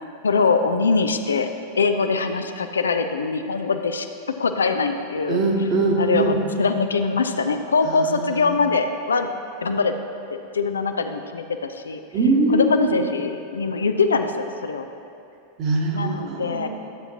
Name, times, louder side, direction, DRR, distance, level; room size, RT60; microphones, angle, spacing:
voice 1, 0.2-1.5 1.8-4.1 4.4-5.4 6.0-9.3 9.6-9.9 10.3-12.0 12.5-14.9 15.9-16.7, left 4 dB, 70° left, 7 dB, 0.4 m, -22 dB
voice 2, 5.3-6.4 7.9-8.5 12.1-13.0 15.6-16.7, right 3 dB, 35° right, -1 dB, 1.5 m, -22 dB
13.0 x 7.7 x 2.9 m, 2.6 s
figure-of-eight pair, 90°, 0 cm